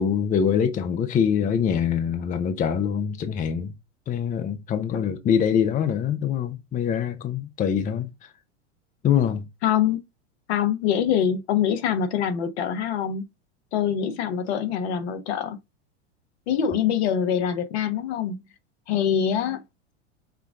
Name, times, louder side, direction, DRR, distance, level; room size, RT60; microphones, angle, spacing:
voice 1, 0.0-3.7 4.1-8.3 9.0-9.4, left 8 dB, 20° left, 0.6 m, -24 dB
voice 2, 9.6-10.0 10.5-13.2 13.7-15.6 16.5-18.4 18.9-19.6, left 8 dB, 65° left, 1.0 m, -24 dB
5.9 x 2.4 x 3.6 m
hypercardioid pair, 100°, 36 cm